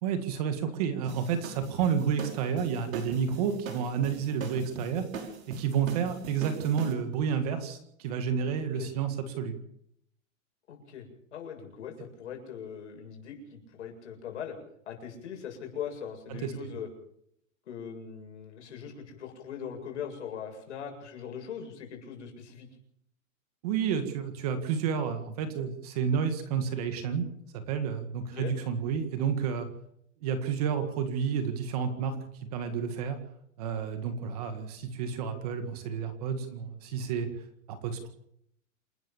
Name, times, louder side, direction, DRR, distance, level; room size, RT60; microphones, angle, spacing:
voice 1, 0.0-5.1 5.5-9.6 16.3-16.7 23.6-27.3 27.5-29.7 30.2-32.2 32.5-33.2 33.6-37.3 37.7-38.1, right 7 dB, 30° right, 8 dB, 1.9 m, -30 dB
sound 1, 1.0-6.9, right 4 dB, 70° right, 6.0 m, -41 dB
voice 2, 10.7-14.6 14.9-16.9 17.7-22.7 28.2-28.5, left 8 dB, 55° left, 2 dB, 7.7 m, -41 dB
28.0 x 13.5 x 7.2 m, 0.72 s
hypercardioid pair, 180°, 41 cm